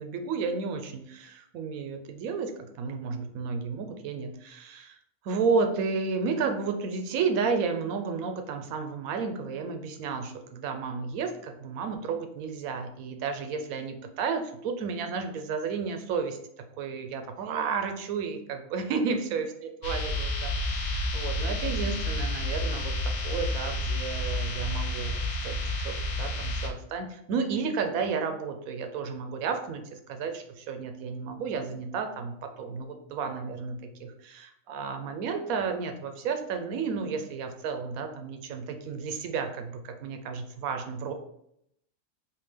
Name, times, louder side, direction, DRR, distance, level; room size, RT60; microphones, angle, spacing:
voice 1, 0.0-5.0 5.2-16.4 16.8-41.1, right 5 dB, 85° right, 6 dB, 1.0 m, -32 dB
sound 1, 19.8-26.7, left 1 dB, 70° left, 1.0 m, -30 dB
3.5 x 2.6 x 3.3 m, 0.73 s
omnidirectional pair, 1.4 m